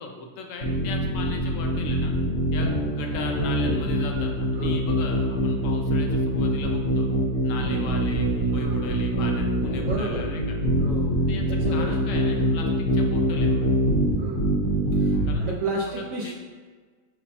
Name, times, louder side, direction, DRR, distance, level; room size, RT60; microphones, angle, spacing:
voice 1, 0.0-2.1 2.5-7.1 7.4-10.6 11.3-13.7 15.2-16.3, left 4 dB, 75° left, 2 dB, 0.7 m, -38 dB
sound 1, 0.6-15.4, equal, 55° left, 1.2 m, -24 dB
voice 2, 8.5-9.1 9.8-10.4 10.8-11.2 11.5-11.9 12.4-12.6 14.2-14.5 14.9-16.3, right 2 dB, 75° right, -2 dB, 1.2 m, -33 dB
5.3 x 2.1 x 4.1 m, 1.5 s
omnidirectional pair, 1.9 m